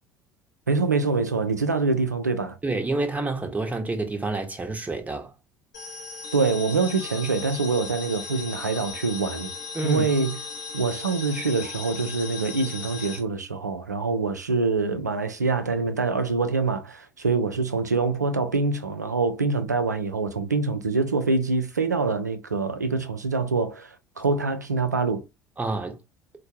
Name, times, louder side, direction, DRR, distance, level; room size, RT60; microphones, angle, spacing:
voice 1, 0.7-2.6 6.3-9.5 9.8-10.4 10.7-25.2, right 4 dB, 85° right, 0.5 m, -25 dB
voice 2, 2.6-5.3 9.7-10.1 25.6-26.0, right 2 dB, 15° right, 0.9 m, -28 dB
sound 1, 5.7-13.2, left 5 dB, 75° left, 0.9 m, -37 dB
4.3 x 2.2 x 2.6 m
figure-of-eight pair, 60°, 9 cm